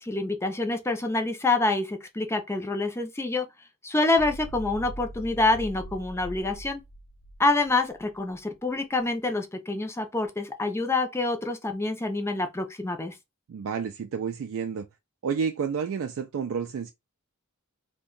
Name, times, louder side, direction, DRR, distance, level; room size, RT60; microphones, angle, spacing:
voice 1, 0.0-3.5 3.8-6.8 7.4-13.1, left 2 dB, 10° left, 0.5 m, -27 dB
sound 1, 4.2-8.4, right 1 dB, 65° left, 0.5 m, -41 dB
voice 2, 13.5-14.9 15.2-16.9, right 6 dB, 65° right, 0.3 m, -30 dB
2.7 x 2.2 x 3.7 m
head